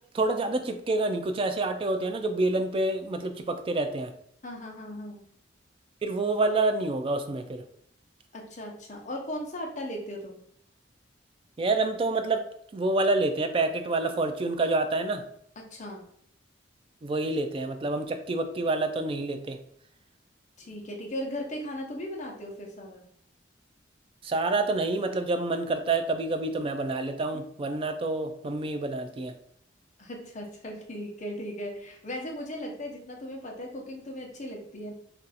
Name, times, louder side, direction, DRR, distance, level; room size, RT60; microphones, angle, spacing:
voice 1, 0.1-4.1 6.0-7.6 11.6-12.4 12.7-15.2 17.0-19.6 24.2-29.3, right 2 dB, 30° right, 7 dB, 0.3 m, -27 dB
voice 2, 4.4-5.2 8.3-10.4 15.6-16.1 20.6-23.1 30.0-34.9, equal, 40° left, 0 dB, 0.7 m, -37 dB
2.6 x 2.3 x 4.0 m, 0.66 s
head